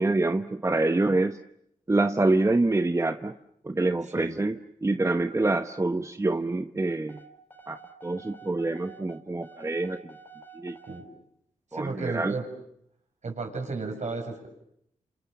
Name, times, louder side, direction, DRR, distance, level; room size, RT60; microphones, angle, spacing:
voice 1, 0.0-1.4 1.9-3.3 3.6-7.2 7.7-10.2 10.5-10.8 11.7-12.3, right 2 dB, 20° right, 9 dB, 1.0 m, -26 dB
sound 1, 7.1-11.1, right 4 dB, 15° left, 3.7 m, -49 dB
voice 2, 11.7-12.5 13.2-14.5, right 3 dB, 60° right, 4 dB, 7.2 m, -33 dB
29.0 x 28.0 x 7.1 m, 0.74 s
cardioid pair, 50°, 14 cm